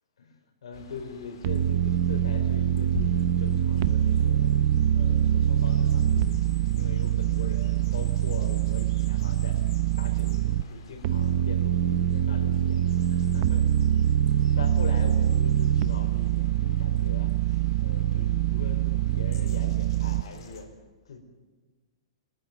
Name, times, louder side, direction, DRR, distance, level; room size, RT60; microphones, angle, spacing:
voice 1, 0.2-4.5 4.9-6.3 6.7-9.6 10.0-12.8 13.1-13.7 14.2-20.7 21.0-21.2, left 4 dB, 85° left, 4 dB, 4.8 m, -42 dB
sound 1, 0.7-20.6, left 4 dB, 60° left, 4.0 m, -46 dB
sound 2, 1.4-10.6 11.0-20.2, right 11 dB, 40° right, 0.7 m, -24 dB
24.0 x 14.0 x 9.5 m, 1.3 s
hypercardioid pair, 165°, 3 cm